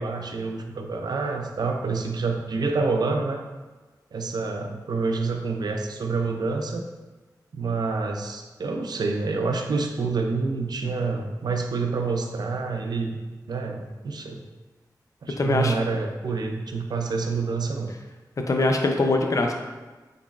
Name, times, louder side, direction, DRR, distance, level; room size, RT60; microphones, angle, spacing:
voice 1, 0.0-3.4 4.1-6.8 7.5-13.2 13.5-14.4 15.2-17.9, right 4 dB, 75° right, 4 dB, 0.4 m, -27 dB
voice 2, 15.4-15.7 18.5-19.5, left 2 dB, 50° left, 3 dB, 0.4 m, -22 dB
3.9 x 3.4 x 2.3 m, 1.3 s
wide cardioid pair, 85°, 7 cm